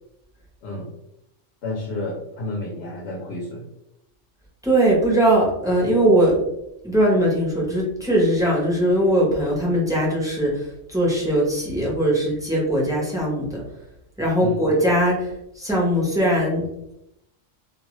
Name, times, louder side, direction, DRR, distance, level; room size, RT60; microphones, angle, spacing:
voice 1, 0.6-0.9 1.6-3.7 14.4-14.6, left 2 dB, 65° left, -1 dB, 0.8 m, -30 dB
voice 2, 4.6-6.4 6.8-13.6 14.2-16.6, right 1 dB, 5° right, -5 dB, 0.5 m, -20 dB
2.4 x 2.3 x 3.0 m, 0.82 s
omnidirectional pair, 1.3 m